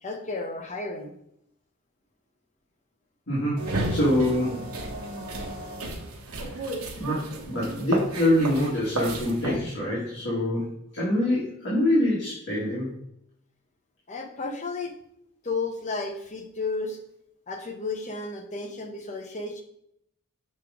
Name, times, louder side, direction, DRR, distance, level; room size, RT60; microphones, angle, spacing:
voice 1, 0.0-1.1 14.1-14.9 15.4-17.0 17.5-19.6, left 3 dB, 35° left, 3 dB, 1.0 m, -33 dB
voice 2, 3.3-4.5 6.5-6.7 7.0-12.9, left 1 dB, 55° left, -8 dB, 2.1 m, -25 dB
sound 1, 3.6-9.6, right 2 dB, 80° right, 1.2 m, -33 dB
6.7 x 5.0 x 3.7 m, 0.73 s
head